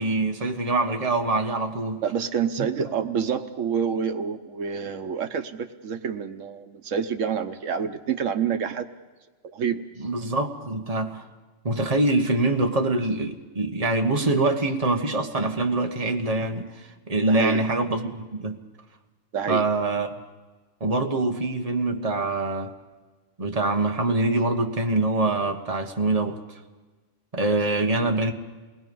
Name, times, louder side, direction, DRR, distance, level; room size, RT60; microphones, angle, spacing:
voice 1, 0.0-2.0 2.6-3.0 10.0-11.2 11.6-18.6 19.5-20.2 20.8-22.7 23.4-26.4 27.3-28.3, right 2 dB, 30° right, 3 dB, 1.5 m, -24 dB
voice 2, 2.0-8.9 9.4-9.8 17.3-17.6 19.3-19.7, right 7 dB, 85° right, 8 dB, 1.3 m, -27 dB
28.0 x 20.5 x 5.4 m, 1.3 s
omnidirectional pair, 1.3 m